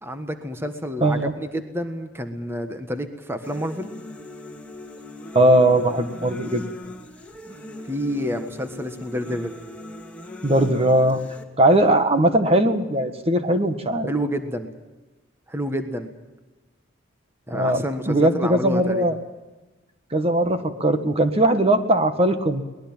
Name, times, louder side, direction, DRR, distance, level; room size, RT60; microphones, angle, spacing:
voice 1, 0.0-3.9 7.9-9.6 14.1-14.7 15.5-16.1 17.5-19.1, equal, 10° right, 7 dB, 1.4 m, -29 dB
voice 2, 1.0-1.3 5.3-6.6 10.4-11.2 11.6-14.1 17.5-19.2 20.1-22.6, right 1 dB, 30° right, 8 dB, 1.5 m, -19 dB
sound 1, 3.4-11.4, left 1 dB, 5° left, 2.5 m, -39 dB
23.0 x 20.0 x 7.4 m, 1.1 s
head